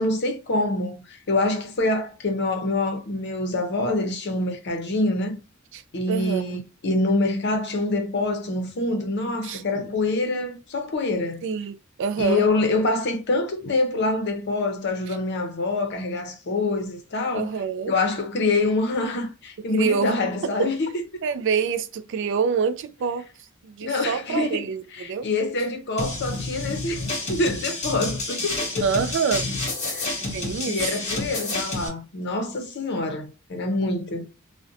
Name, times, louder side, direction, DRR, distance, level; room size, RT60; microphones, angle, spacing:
voice 1, 0.0-5.4 5.9-11.4 12.2-17.5 17.9-20.9 23.8-24.6 25.0-28.8 29.9-30.2 30.7-34.3, left 2 dB, 55° left, 0.6 m, -25 dB
voice 2, 5.7-6.6 9.4-9.6 11.4-12.5 15.1-15.2 17.3-17.9 19.7-20.1 20.4-20.7 21.2-25.3 28.8-29.5 30.2-30.8, right 6 dB, 60° right, 0.3 m, -27 dB
sound 1, 26.0-31.9, left 2 dB, 30° left, 1.2 m, -29 dB
2.5 x 2.1 x 2.5 m
head